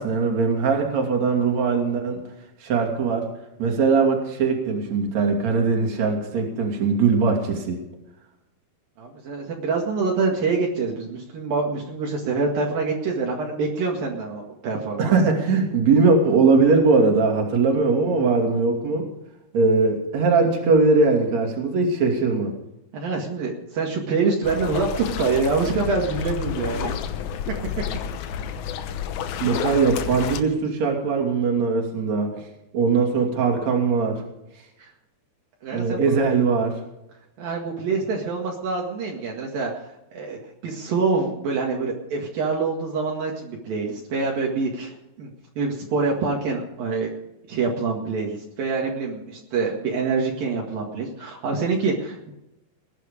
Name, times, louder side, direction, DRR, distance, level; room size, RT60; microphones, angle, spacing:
voice 1, 0.0-2.2 2.6-3.3 3.6-7.8 15.0-19.1 19.5-22.5 29.4-32.4 32.7-34.2 35.7-36.8, right 4 dB, 50° right, 2 dB, 3.8 m, -20 dB
voice 2, 9.0-15.2 22.9-27.0 34.8-34.9 35.6-36.2 37.4-45.3 45.6-47.1 47.5-52.3, right 4 dB, 65° right, -1 dB, 3.6 m, -26 dB
sound 1, 24.4-30.4, left 8 dB, 70° left, 2.0 m, -30 dB
19.5 x 11.0 x 5.2 m, 0.89 s
omnidirectional pair, 4.5 m